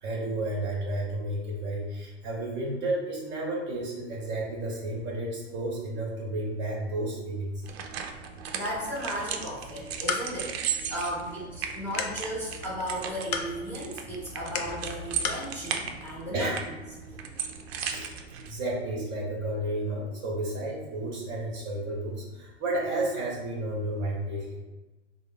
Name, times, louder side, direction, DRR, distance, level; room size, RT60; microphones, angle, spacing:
voice 1, 0.0-7.6 16.3-16.6 17.8-18.1 18.5-24.6, right 1 dB, 30° right, -3 dB, 0.8 m, -32 dB
sound 1, 7.6-18.5, right 7 dB, 60° right, 0.5 m, -36 dB
voice 2, 8.5-16.5, equal, 5° left, -7 dB, 0.9 m, -35 dB
sound 2, 9.7-15.5, left 6 dB, 60° left, 0.5 m, -37 dB
3.2 x 2.1 x 3.7 m, 1.2 s
hypercardioid pair, 120°, 36 cm